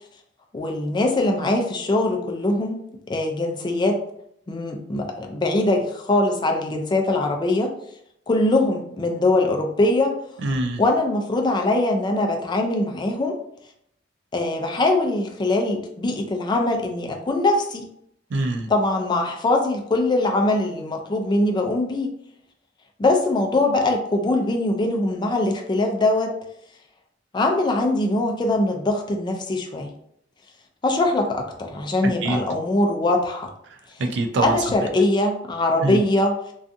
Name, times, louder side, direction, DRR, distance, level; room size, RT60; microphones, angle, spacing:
voice 1, 0.5-2.8 3.1-4.0 4.5-7.7 8.3-10.1 10.8-13.4 14.3-17.9 18.7-22.1 23.0-26.3 27.3-29.9 30.8-33.5 34.4-36.3, left 2 dB, 25° left, 2 dB, 0.3 m, -22 dB
voice 2, 10.4-10.8 18.3-18.7 32.0-32.4 33.7-34.8 35.8-36.0, right 2 dB, 70° right, 4 dB, 0.4 m, -25 dB
2.5 x 2.3 x 2.5 m, 0.74 s
head